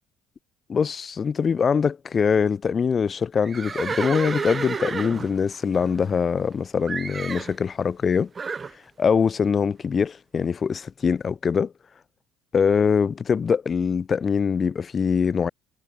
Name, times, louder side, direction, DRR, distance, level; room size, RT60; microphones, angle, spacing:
voice 1, 0.7-8.3 9.0-11.7 12.5-15.5, left 6 dB, 40° left, 4.7 m, -23 dB
Livestock farm animals working animals, 3.4-6.5 6.9-7.6 8.3-8.7, right 5 dB, 30° right, 2.4 m, -31 dB
supercardioid pair, 80°, 0 cm